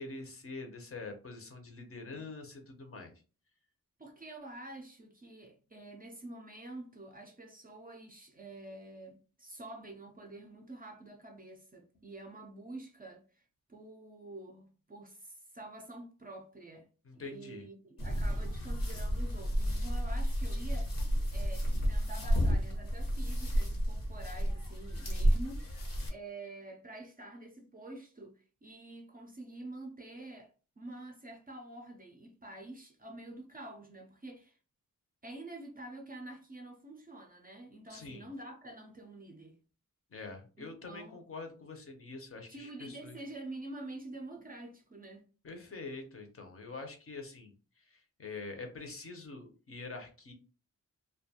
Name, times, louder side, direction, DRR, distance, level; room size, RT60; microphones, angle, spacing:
voice 1, 0.0-3.1 17.0-17.7 37.9-38.3 40.1-43.2 45.4-50.3, left 3 dB, 45° left, 0.6 m, -45 dB
voice 2, 4.0-13.4 13.7-16.9 17.1-21.1 21.3-25.7 26.1-30.5 30.8-34.6 35.2-39.6 40.6-41.2 42.5-45.3, right 2 dB, 30° right, 0.4 m, -47 dB
sound 1, 18.0-26.1, equal, 85° left, 0.9 m, -31 dB
2.5 x 2.2 x 2.7 m
wide cardioid pair, 180°, 32 cm